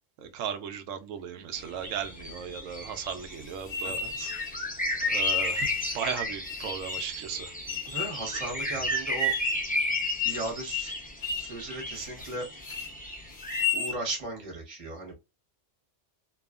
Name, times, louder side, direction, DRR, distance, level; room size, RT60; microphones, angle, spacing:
voice 1, 0.2-4.0 5.1-7.5, right 8 dB, 90° right, 1.0 m, -36 dB
sound 1, 1.6-13.6, equal, 10° left, 0.4 m, -33 dB
sound 2, 3.7-4.5 5.2-6.0 6.5-7.2 7.7-8.2 8.6-8.7 9.2-9.6 9.9-10.4 10.7-10.9 11.2-11.5 11.9-12.4 12.6-12.9 13.4-14.0, left 8 dB, 50° left, 0.8 m, -32 dB
voice 2, 3.8-4.3 7.9-9.3 10.2-10.9 11.3-12.5 13.7-15.1, right 2 dB, 30° right, 1.0 m, -36 dB
2.8 x 2.3 x 2.3 m
omnidirectional pair, 1.3 m